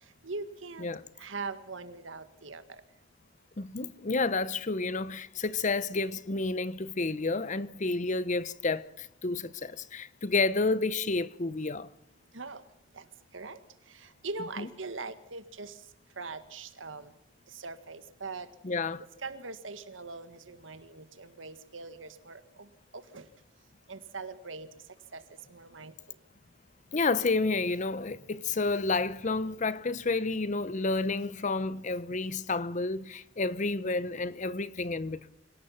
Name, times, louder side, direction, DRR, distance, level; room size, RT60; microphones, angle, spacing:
voice 1, 0.2-0.9 1.2-2.6 12.3-12.6 13.3-13.6 14.2-15.7 16.2-17.1 17.6-18.5 19.2-22.4 22.9-23.3 23.9-24.7 25.1-25.2 25.5-25.9, right 3 dB, 90° right, 1.7 m, -41 dB
voice 2, 3.6-11.9 14.6-14.7 18.6-19.0 26.9-35.3, left 3 dB, 40° left, 0.8 m, -30 dB
26.0 x 17.5 x 5.8 m
head